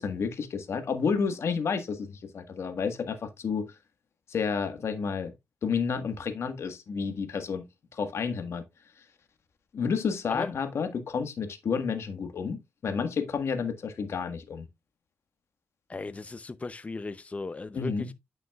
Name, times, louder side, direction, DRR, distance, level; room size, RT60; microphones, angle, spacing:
voice 1, 0.0-3.7 4.3-5.3 5.6-7.6 7.9-8.6 9.7-12.6 12.8-14.6 17.7-18.1, left 5 dB, 65° left, 1.5 m, -30 dB
voice 2, 15.9-18.1, left 3 dB, 30° left, 0.6 m, -36 dB
9.2 x 6.1 x 2.4 m
cardioid pair, 80°, 5 cm